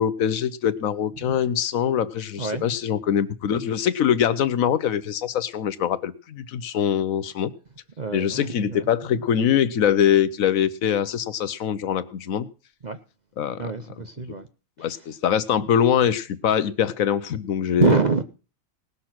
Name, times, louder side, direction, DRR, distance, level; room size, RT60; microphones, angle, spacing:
voice 1, 0.0-7.5 8.1-12.5 13.4-13.6 14.8-18.0, left 9 dB, 75° left, 1.2 m, -23 dB
voice 2, 2.4-2.7 8.0-8.9 12.8-13.0 13.6-14.5 14.8-14.9 17.8-18.2, right 5 dB, 40° right, 0.7 m, -25 dB
18.5 x 6.5 x 5.9 m
omnidirectional pair, 1.5 m